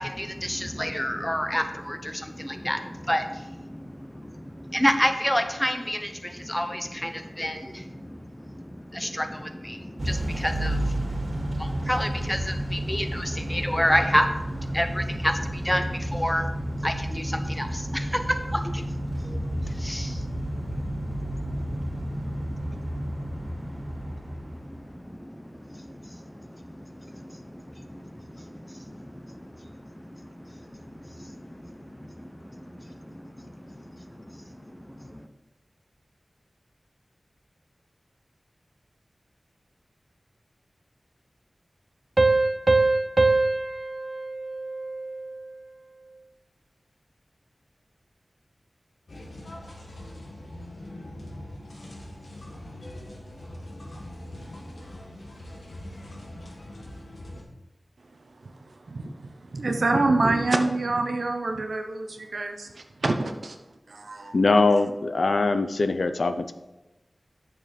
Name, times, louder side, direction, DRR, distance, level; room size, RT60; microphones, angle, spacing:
voice 1, 0.0-35.3, equal, 10° left, 7 dB, 0.9 m, -31 dB
Motor vehicle (road) / Engine starting / Accelerating revving vroom, 10.0-25.0, right 1 dB, 65° right, 2.3 m, -31 dB
Piano, 42.2-45.5, right 3 dB, 40° right, 0.6 m, -23 dB
sound 1, 49.1-57.4, left 1 dB, 90° left, 1.7 m, -42 dB
voice 2, 59.5-62.7 63.0-63.5 63.9-64.3, right 2 dB, 80° right, 4 dB, 0.8 m, -25 dB
voice 3, 64.3-66.5, left 3 dB, 70° left, 10 dB, 0.6 m, -22 dB
8.9 x 6.8 x 4.3 m, 1.0 s
wide cardioid pair, 70°, 0 cm